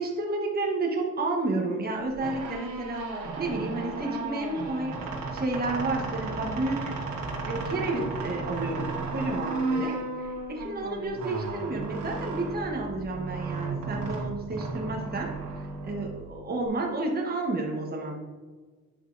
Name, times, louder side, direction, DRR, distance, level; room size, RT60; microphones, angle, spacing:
voice 1, 0.0-5.0 5.3-7.0 7.5-10.0 10.2-15.3 15.8-18.1, right 2 dB, 30° right, 0 dB, 1.2 m, -31 dB
sound 1, 2.0-16.7, right 3 dB, 85° right, 1.5 m, -34 dB
8.2 x 5.3 x 2.6 m, 1.4 s
cardioid pair, 90°, 30 cm